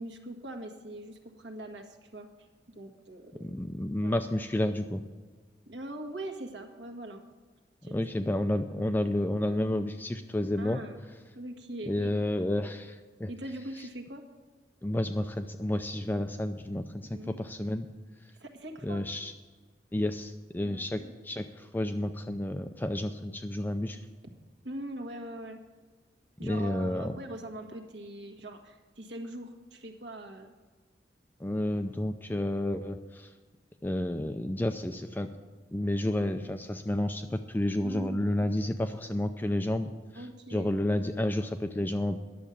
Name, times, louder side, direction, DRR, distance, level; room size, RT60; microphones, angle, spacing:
voice 1, 0.0-3.5 4.0-4.2 5.6-7.2 7.8-8.0 10.6-11.0 11.3-12.1 13.3-14.2 17.1-17.4 18.4-19.0 20.6-21.1 24.6-25.6 26.4-30.5 37.8-38.2 40.1-40.7, right 1 dB, 70° right, 4 dB, 1.6 m, -42 dB
voice 2, 3.4-5.0 7.9-10.8 11.9-13.3 14.8-17.9 18.8-19.3 19.9-24.0 26.4-27.2 31.4-33.3 33.8-35.3 35.7-42.2, left 1 dB, 10° left, 7 dB, 0.4 m, -31 dB
11.0 x 7.2 x 8.4 m, 1.4 s
head